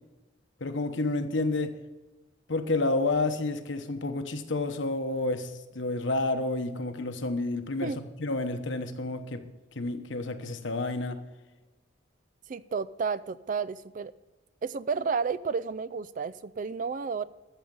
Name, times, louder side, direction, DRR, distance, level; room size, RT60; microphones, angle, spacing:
voice 1, 0.6-1.8 2.5-7.9 8.2-9.4 9.7-11.2, left 2 dB, 70° left, 1.1 m, -30 dB
voice 2, 12.5-14.1 14.6-17.3, right 5 dB, 40° right, 0.3 m, -31 dB
13.5 x 7.2 x 5.4 m
head